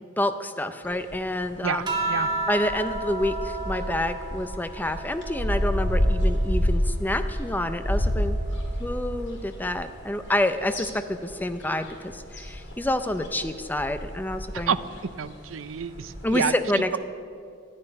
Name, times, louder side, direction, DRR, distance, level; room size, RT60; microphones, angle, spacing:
voice 1, 0.2-1.9 2.5-8.4 8.8-14.8 16.2-17.0, left 1 dB, 10° left, 10 dB, 0.5 m, -28 dB
sound 1, 0.8-16.3, equal, 65° left, 2.6 m, -30 dB
sound 2, 1.9-6.7 7.1-8.9 10.0-10.6, right 2 dB, 20° right, 1.4 m, -34 dB
voice 2, 15.2-16.5, right 6 dB, 80° right, 14 dB, 0.5 m, -28 dB
12.5 x 6.7 x 9.9 m, 2.3 s
head